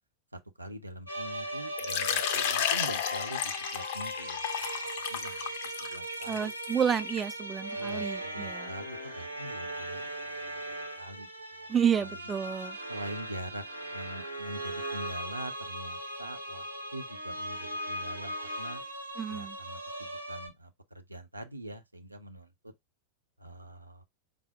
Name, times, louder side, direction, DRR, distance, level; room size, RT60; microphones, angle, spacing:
voice 1, 0.6-4.7 5.1-5.5 5.8-6.5 7.7-10.6 11.0-11.3 11.9-12.2 12.9-13.6 13.9-18.8 19.3-22.5 23.4-24.0, right 1 dB, 85° right, 0.5 m, -44 dB
sound 1, 1.1-20.5, right 1 dB, 85° left, 0.9 m, -39 dB
Water / Liquid, 1.8-7.3, left 9 dB, 50° left, 0.4 m, -33 dB
voice 2, 6.3-8.7 11.7-12.8 19.2-19.6, right 7 dB, 20° right, 0.4 m, -30 dB
4.7 x 2.0 x 3.4 m
figure-of-eight pair, 90°, 0 cm